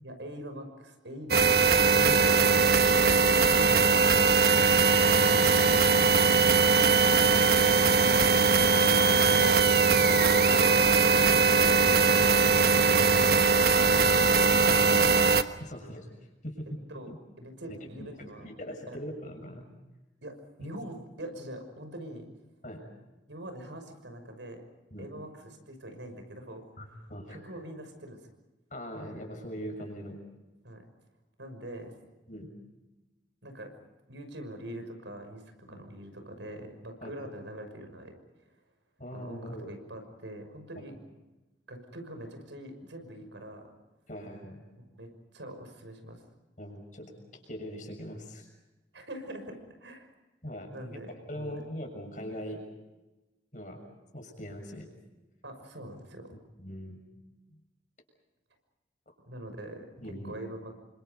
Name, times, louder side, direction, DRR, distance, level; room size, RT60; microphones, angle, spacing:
voice 1, 0.0-2.4 9.9-11.2 14.6-15.1 16.9-17.1 17.4-18.5 18.9-19.0 20.2-20.3 20.6-22.2 23.3-24.7 25.0-25.3 25.7-26.6 27.3-28.2 30.6-30.8 31.4-31.9 33.4-33.7 34.1-38.1 39.1-40.9 41.7-43.7 44.8-46.2 48.9-50.1 50.7-51.1 51.3-51.6 55.4-56.3 59.3-59.9 60.2-60.8, right 1 dB, 80° right, 6 dB, 6.1 m, -43 dB
sound 1, 1.3-15.4, right 5 dB, 55° right, 1.2 m, -21 dB
voice 2, 5.2-5.7 8.8-9.5 10.0-10.2 10.6-10.7 11.6-12.0 13.9-14.6 15.6-16.1 16.4-16.8 17.1-17.2 17.7-19.6 20.6-20.7 22.6-22.8 24.9-25.1 26.8-27.4 28.7-30.2 32.3-32.5 35.7-35.8 37.0-37.1 39.0-39.8 44.1-44.6 46.6-48.5 50.4-52.6 53.5-53.8 54.1-54.9 56.6-57.0 60.0-60.3, equal, 40° left, 4 dB, 6.8 m, -41 dB
30.0 x 25.5 x 5.4 m, 1.1 s
head